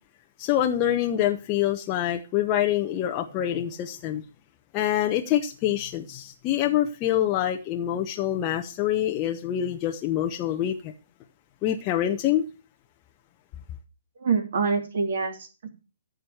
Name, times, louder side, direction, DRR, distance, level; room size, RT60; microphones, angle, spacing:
voice 1, 0.4-4.2 4.7-10.9 11.6-12.4, left 11 dB, 25° left, 1.0 m, -25 dB
voice 2, 14.2-15.7, right 5 dB, 55° right, 2.9 m, -26 dB
14.5 x 5.1 x 8.0 m
figure-of-eight pair, 125°, 0 cm